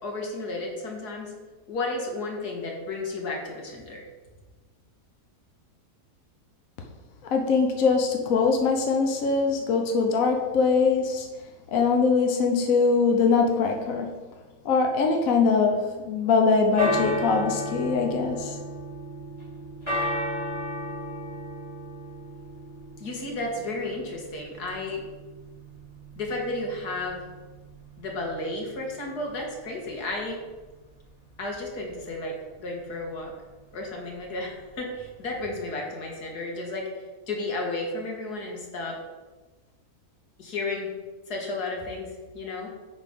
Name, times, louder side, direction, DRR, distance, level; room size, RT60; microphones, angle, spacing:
voice 1, 0.0-1.3 1.7-4.1 23.0-25.0 26.2-27.3 28.0-30.4 31.4-32.3 32.6-33.3 33.7-36.9 37.3-39.0 40.4-40.9 41.3-42.7, left 2 dB, 85° left, 0 dB, 2.1 m, -33 dB
voice 2, 7.3-11.3 11.7-14.1 14.6-18.5, left 4 dB, 65° left, 2 dB, 1.2 m, -22 dB
sound 1, 16.4-35.5, equal, 15° left, 2.4 m, -36 dB
9.9 x 4.2 x 5.2 m, 1.2 s
omnidirectional pair, 1.7 m